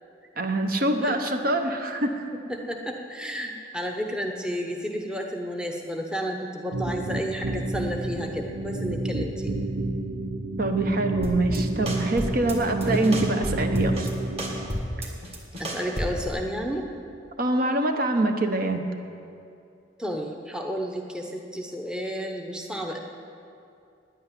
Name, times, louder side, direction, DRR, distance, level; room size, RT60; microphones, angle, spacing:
voice 1, 0.4-2.2 10.6-14.1 17.4-18.8, right 2 dB, 50° right, 5 dB, 0.9 m, -24 dB
voice 2, 2.5-9.6 15.6-16.8 20.0-23.0, equal, 5° right, 1 dB, 0.8 m, -32 dB
sound 1, 6.7-14.7, right 2 dB, 85° right, 0.9 m, -30 dB
sound 2, 11.2-11.6 11.9-12.5 12.8-14.1 14.4-16.3, equal, 35° right, 1.7 m, -30 dB
9.9 x 8.6 x 9.6 m, 2.5 s
head